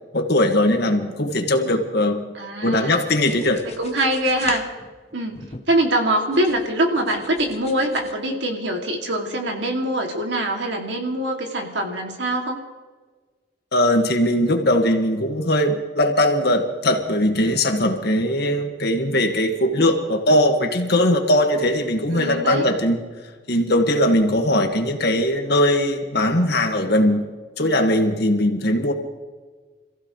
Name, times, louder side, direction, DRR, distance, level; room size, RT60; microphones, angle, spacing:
voice 1, 0.1-2.3 2.6-3.7 13.7-23.0 23.5-27.3 27.6-28.9, left 1 dB, 65° left, 4 dB, 1.9 m, -20 dB
voice 2, 2.3-3.0 3.8-4.6 5.1-5.4 5.7-12.6 22.1-22.6, right 1 dB, 80° right, 2 dB, 2.6 m, -23 dB
sound 1, 3.1-5.9 6.3-8.1, left 4 dB, 35° left, 1.1 m, -38 dB
27.0 x 15.5 x 3.2 m, 1.4 s
head